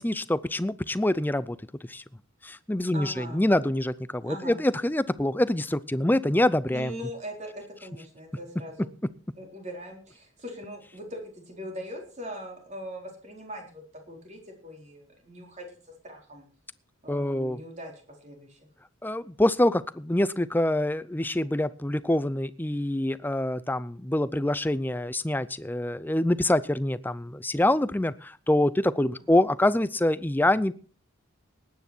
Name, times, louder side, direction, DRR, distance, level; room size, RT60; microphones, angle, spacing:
voice 1, 0.0-1.6 1.9-2.0 2.4-6.9 17.1-17.6 19.0-30.7, left 1 dB, 10° left, 17 dB, 0.5 m, -25 dB
voice 2, 2.9-3.4 4.3-4.6 6.7-8.9 9.4-16.5 17.0-18.6 29.2-29.4, equal, 35° right, 1 dB, 4.4 m, -41 dB
19.0 x 9.6 x 4.5 m, 0.41 s
head